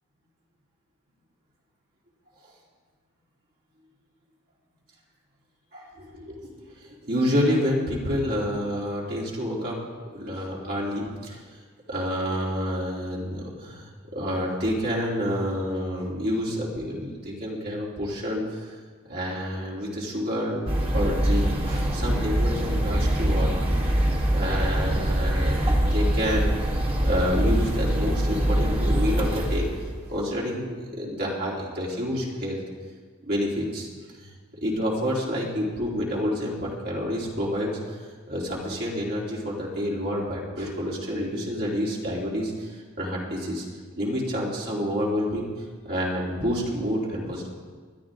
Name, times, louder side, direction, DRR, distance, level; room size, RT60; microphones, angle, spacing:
voice 1, 5.7-6.5 6.8-9.8 10.1-11.4 11.9-18.7 19.1-20.6 20.9-23.5 24.3-26.5 27.0-29.7 30.1-32.6 33.2-33.9 34.2-34.3 34.6-37.7 38.3-42.7 43.0-43.7 44.0-45.5 45.8-47.5, equal, 45° right, -5 dB, 3.5 m, -28 dB
sound 1, 20.7-30.1, right 1 dB, 25° right, 1.9 m, -24 dB
21.0 x 13.0 x 3.8 m, 1.5 s
head